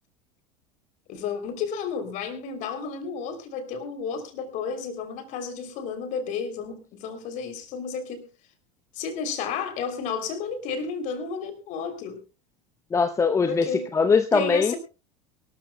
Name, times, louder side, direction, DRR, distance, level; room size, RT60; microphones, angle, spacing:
voice 1, 1.1-8.3 8.9-12.2 13.5-13.9 14.3-14.8, left 6 dB, 45° left, 8 dB, 3.2 m, -32 dB
voice 2, 12.9-14.7, left 5 dB, 15° left, 10 dB, 0.8 m, -21 dB
23.0 x 13.5 x 2.2 m, 0.31 s
figure-of-eight pair, 75°, 18 cm